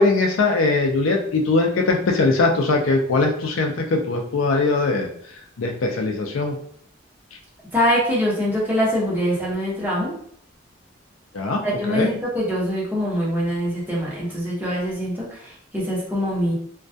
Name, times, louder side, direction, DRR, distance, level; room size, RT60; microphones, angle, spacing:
voice 1, 0.0-5.1 5.6-6.6 11.3-12.1, left 3 dB, 80° left, 2 dB, 0.4 m, -21 dB
voice 2, 7.7-10.1 11.6-16.5, equal, 10° right, -6 dB, 0.8 m, -23 dB
2.2 x 2.2 x 2.6 m, 0.64 s
head